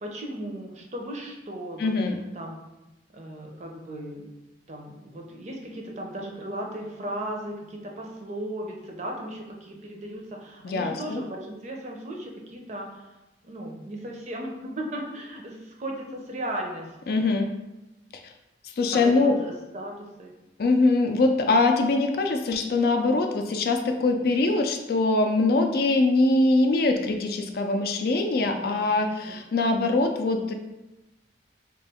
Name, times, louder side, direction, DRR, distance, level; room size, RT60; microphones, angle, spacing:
voice 1, 0.0-1.9 2.3-2.6 3.1-4.3 4.7-13.1 13.4-17.2 18.9-20.3 28.6-29.4, right 1 dB, 40° right, 1 dB, 0.6 m, -36 dB
voice 2, 1.8-2.2 10.6-11.2 17.1-17.5 18.8-19.4 20.6-30.5, left 2 dB, 60° left, 5 dB, 0.4 m, -23 dB
3.5 x 2.9 x 3.4 m, 1.0 s
head